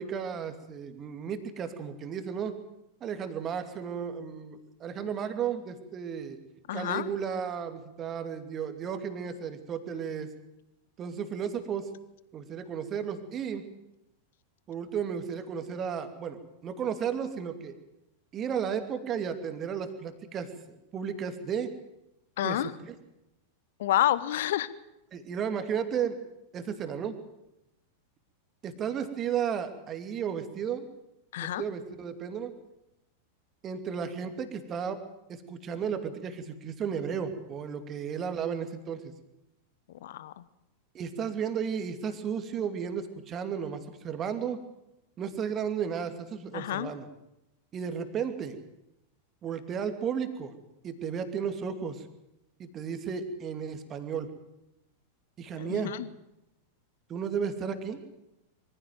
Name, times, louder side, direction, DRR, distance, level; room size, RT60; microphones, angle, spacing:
voice 1, 0.0-2.6 3.0-6.4 6.7-10.3 11.0-11.9 12.3-13.7 14.7-17.7 18.3-21.7 22.4-22.9 25.1-26.2 26.5-27.2 28.6-30.9 31.4-32.5 33.6-35.0 35.3-39.1 40.9-44.6 45.2-47.1 47.7-48.6 49.4-50.6 50.8-52.1 52.6-54.3 55.4-55.9 57.1-58.0, right 7 dB, 30° right, 9 dB, 2.6 m, -34 dB
voice 2, 6.7-7.1 22.4-22.7 23.8-24.7 31.3-31.6 40.0-40.4 46.5-46.9 55.6-56.1, left 13 dB, 55° left, 18 dB, 1.0 m, -29 dB
23.5 x 15.5 x 9.3 m, 0.89 s
figure-of-eight pair, 90°, 0 cm